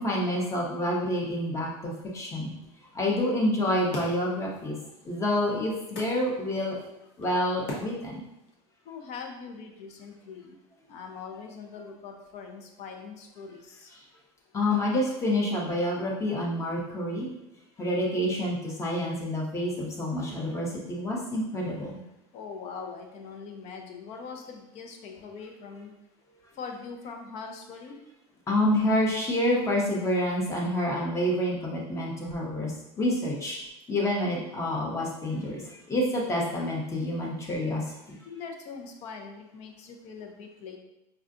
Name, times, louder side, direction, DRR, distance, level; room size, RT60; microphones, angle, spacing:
voice 1, 0.0-2.5 2.9-4.8 5.0-6.8 7.2-8.2 14.5-17.3 17.8-22.0 28.5-33.6 33.9-37.9, left 1 dB, 20° left, -2 dB, 0.8 m, -28 dB
sound 1, 3.5-8.5, left 1 dB, 85° left, 1.1 m, -43 dB
voice 2, 8.9-10.5 10.9-13.9 22.3-25.9 26.6-28.0 38.2-40.8, left 5 dB, 45° left, 4 dB, 0.6 m, -42 dB
5.5 x 2.3 x 2.5 m, 0.90 s
supercardioid pair, 140°, 16 cm